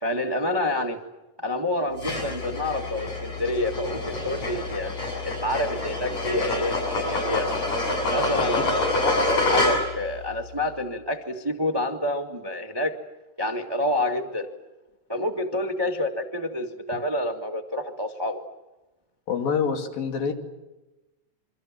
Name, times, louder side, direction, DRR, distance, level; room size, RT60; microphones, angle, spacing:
voice 1, 0.0-1.0 1.4-4.9 5.2-7.5 8.1-12.9 13.4-14.5 15.1-18.4, left 1 dB, 30° right, 5 dB, 0.4 m, -28 dB
sound 1, 2.0-10.1, left 2 dB, 50° left, 8.4 m, -27 dB
voice 2, 19.3-20.3, left 6 dB, 75° left, 4 dB, 4.3 m, -27 dB
27.5 x 24.5 x 7.6 m, 1.1 s
omnidirectional pair, 4.1 m